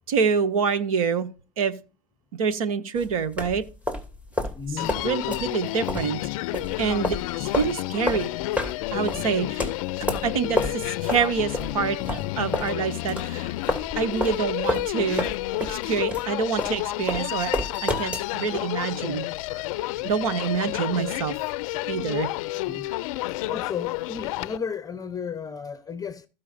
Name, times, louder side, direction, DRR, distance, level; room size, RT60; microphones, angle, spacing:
voice 1, 0.1-1.3 1.6-1.7 2.4-3.6 5.0-6.2 6.8-8.3 8.9-9.7 10.2-13.5 14.0-15.3 15.7-19.2 20.0-21.3 21.9-22.3, right 6 dB, 85° right, 1.0 m, -26 dB
sound 1, 3.0-12.7 13.1-18.3, left 1 dB, 10° right, 2.6 m, -30 dB
voice 2, 4.5-5.0 22.5-22.9 23.3-26.3, left 6 dB, 20° left, 0.8 m, -34 dB
Human voice, 4.8-24.6, left 18 dB, 75° left, 0.4 m, -30 dB
15.5 x 5.6 x 2.6 m
hypercardioid pair, 90°, 18 cm